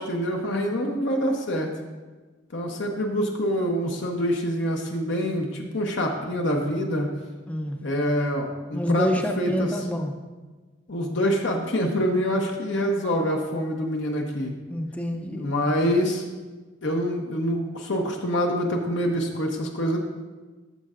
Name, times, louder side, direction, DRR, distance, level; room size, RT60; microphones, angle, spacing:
voice 1, 0.0-1.7 2.5-7.1 7.8-9.1 9.4-9.7 10.9-14.5 15.3-16.2 16.8-20.0, equal, 65° left, 2 dB, 0.8 m, -26 dB
voice 2, 7.5-7.8 8.7-10.1 14.7-15.5, equal, 5° left, 4 dB, 0.5 m, -27 dB
12.0 x 6.4 x 2.4 m, 1.3 s
head